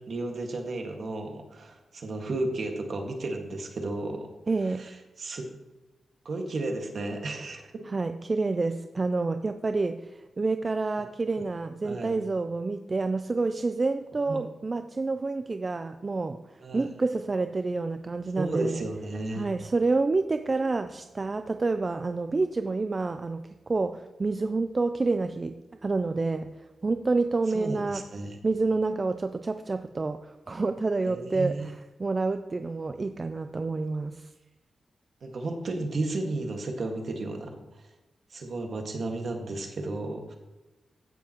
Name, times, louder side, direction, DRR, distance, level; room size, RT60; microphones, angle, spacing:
voice 1, 0.0-4.3 4.8-4.9 5.2-5.4 6.3-7.8 11.8-12.1 14.3-14.4 16.6-16.9 18.4-19.4 27.5-28.4 31.0-31.7 35.2-37.8 38.3-40.3, right 2 dB, 60° right, 2 dB, 1.8 m, -33 dB
voice 2, 4.5-4.9 7.9-18.8 19.3-25.5 25.8-28.0 28.4-31.7 32.0-34.3, right 3 dB, 35° right, 8 dB, 0.4 m, -28 dB
15.5 x 7.0 x 3.0 m, 1.0 s
cardioid pair, 85°, 0 cm